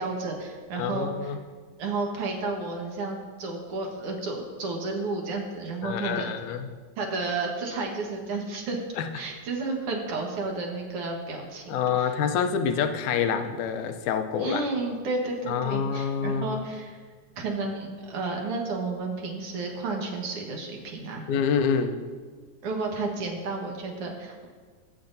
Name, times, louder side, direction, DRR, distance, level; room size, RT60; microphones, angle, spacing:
voice 1, 0.0-1.3 1.8-6.3 7.0-8.8 9.1-12.1 14.4-17.0 17.4-21.3 22.6-24.4, right 3 dB, 55° right, 1 dB, 2.0 m, -32 dB
voice 2, 0.8-1.4 5.8-6.7 9.0-9.1 11.7-14.6 15.5-16.6 21.3-22.0, left 7 dB, 85° left, 7 dB, 2.1 m, -27 dB
17.5 x 8.5 x 2.6 m, 1.5 s
omnidirectional pair, 3.4 m